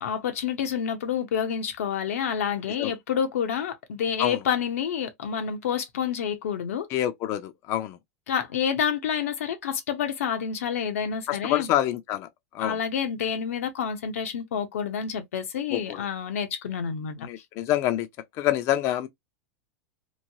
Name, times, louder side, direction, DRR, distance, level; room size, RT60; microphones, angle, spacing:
voice 1, 0.0-6.9 8.3-11.7 12.6-17.2, left 7 dB, 85° left, 0.7 m, -28 dB
voice 2, 6.9-8.0 11.3-12.3 12.5-12.8 15.7-16.0 17.2-18.1 18.3-19.1, left 12 dB, 40° left, 0.5 m, -26 dB
3.0 x 2.2 x 2.7 m
supercardioid pair, 130°, 7 cm